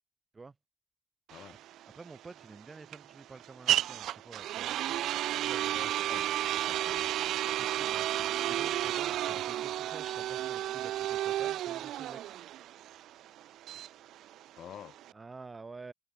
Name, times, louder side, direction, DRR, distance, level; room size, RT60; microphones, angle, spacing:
voice 1, 1.3-1.6 5.6-7.2 9.1-9.4 14.6-15.0, left 10 dB, 55° left, 1.5 m, -50 dB
sound 1, 1.3-15.1, right 13 dB, 70° right, 0.3 m, -32 dB
voice 2, 1.9-5.0 5.4-5.7 7.6-8.1 8.5-12.4 15.1-15.9, right 4 dB, 20° right, 3.2 m, -49 dB
cardioid pair, 130°, 0 cm